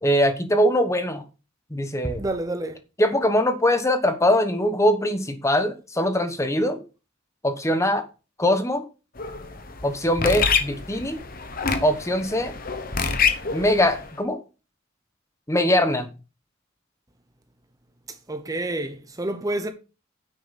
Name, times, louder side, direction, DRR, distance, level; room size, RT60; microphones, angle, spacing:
voice 1, 0.0-1.2 1.7-2.2 3.0-6.8 7.4-8.1 8.4-8.8 9.8-11.2 11.8-12.5 13.5-14.4 15.5-16.1, left 1 dB, 15° left, 1.1 m, -22 dB
voice 2, 2.2-2.8 18.3-19.7, right 1 dB, 20° right, 0.8 m, -28 dB
sound 1, 9.2-14.1, left 5 dB, 50° left, 1.2 m, -27 dB
9.5 x 6.6 x 4.2 m
head